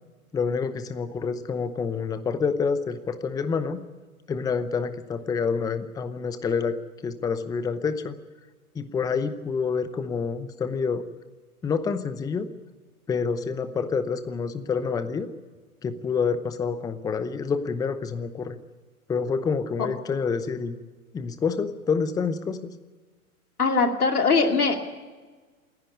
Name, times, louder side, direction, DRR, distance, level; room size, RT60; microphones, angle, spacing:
voice 1, 0.3-3.8 4.3-6.8 7.0-8.1 8.7-11.0 11.6-12.5 13.1-15.3 15.8-18.6 19.1-20.8 21.1-22.6, left 5 dB, 10° left, 12 dB, 0.8 m, -27 dB
voice 2, 23.6-24.8, left 4 dB, 75° left, 4 dB, 2.6 m, -21 dB
28.0 x 11.0 x 9.8 m, 1.4 s
figure-of-eight pair, 105°, 45 cm